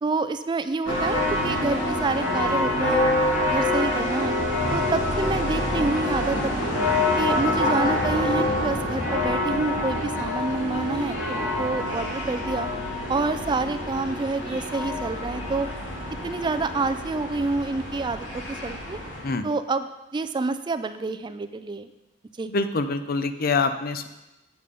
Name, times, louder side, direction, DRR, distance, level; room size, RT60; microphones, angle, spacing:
voice 1, 0.0-3.0 3.5-4.3 4.7-6.7 7.2-12.7 13.1-15.7 16.2-19.0 19.4-19.9 20.1-21.9 22.4-22.5, right 3 dB, 25° right, 11 dB, 0.3 m, -28 dB
sound 1, 0.9-19.2, left 1 dB, 70° left, 2.4 m, -26 dB
voice 2, 22.5-24.1, left 3 dB, 50° left, 10 dB, 0.6 m, -25 dB
8.6 x 6.9 x 5.2 m, 1.0 s
head